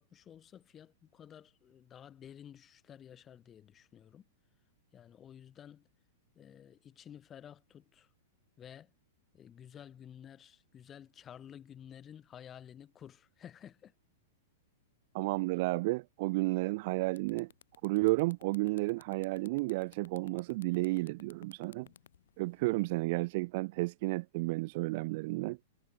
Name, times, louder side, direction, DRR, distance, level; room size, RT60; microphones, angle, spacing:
voice 1, 0.0-4.2 4.9-5.9 6.4-8.1 8.6-8.9 9.3-13.9, left 9 dB, 20° left, 3.0 m, -52 dB
voice 2, 15.1-17.5 17.8-21.9 22.4-25.6, right 23 dB, 45° right, 0.3 m, -32 dB
sound 1, 16.7-16.8 17.1-23.2, left 10 dB, 80° left, 2.8 m, -58 dB
supercardioid pair, 155°, 0 cm